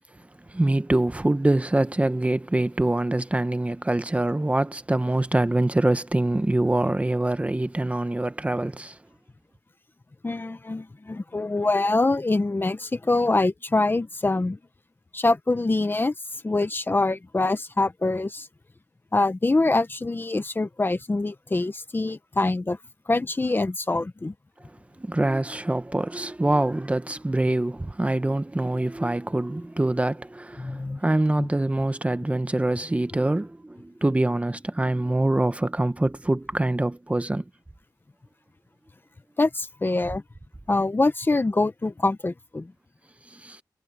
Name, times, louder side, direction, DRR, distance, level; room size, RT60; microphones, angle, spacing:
voice 1, 0.5-9.0 25.0-37.5 43.3-43.6, right 1 dB, 15° right, 1.0 m, -24 dB
voice 2, 10.2-14.6 15.1-16.1 16.4-18.5 19.1-22.8 23.1-24.3 30.6-31.0 31.4-31.5 39.4-40.2 40.7-42.7, left 2 dB, 25° left, 0.8 m, -24 dB
wide cardioid pair, 125°, 8 cm